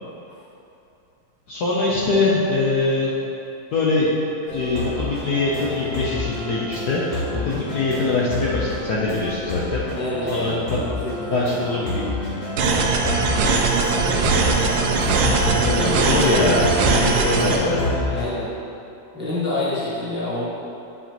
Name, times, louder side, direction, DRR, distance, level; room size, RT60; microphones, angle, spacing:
voice 1, 1.5-3.2 3.7-4.1 4.5-9.9 10.3-10.9 11.2-12.3 15.6-18.0, left 3 dB, 65° left, -5 dB, 1.1 m, -23 dB
sound 1, 4.5-18.2, equal, 40° left, 1.2 m, -28 dB
voice 2, 9.9-11.8 13.5-14.2 15.7-15.9 18.1-18.5 19.1-20.5, left 2 dB, 5° right, -10 dB, 0.9 m, -28 dB
sound 2, 12.6-17.6, right 4 dB, 80° right, 1.5 m, -20 dB
8.4 x 4.9 x 2.9 m, 2.7 s
omnidirectional pair, 2.2 m